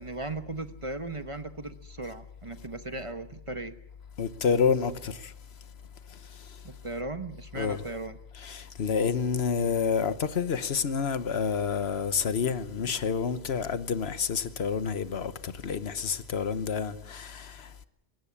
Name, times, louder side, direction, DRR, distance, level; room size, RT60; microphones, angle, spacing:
voice 1, 0.0-3.7 6.6-8.2, right 2 dB, 30° right, 1.0 m, -37 dB
voice 2, 4.2-5.3 6.1-6.6 7.5-7.8 8.4-17.9, left 6 dB, 80° left, 1.2 m, -29 dB
21.0 x 17.5 x 8.5 m
omnidirectional pair, 1.1 m